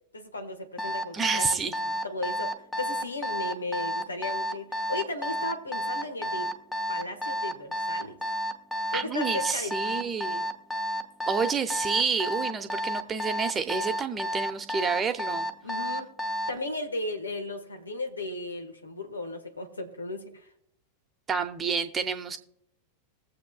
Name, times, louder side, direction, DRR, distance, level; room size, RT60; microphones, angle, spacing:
voice 1, 0.1-1.5 1.8-6.5 6.9-8.2 8.9-10.1 15.6-16.1 16.5-20.5, left 2 dB, 75° left, 6 dB, 1.5 m, -36 dB
Alarm, 0.8-16.6, equal, 5° left, 1.0 m, -31 dB
voice 2, 1.1-1.7 8.9-10.4 11.3-15.5 21.3-22.4, right 5 dB, 20° right, 8 dB, 1.0 m, -29 dB
21.0 x 7.7 x 2.4 m, 0.72 s
figure-of-eight pair, 90°, 0 cm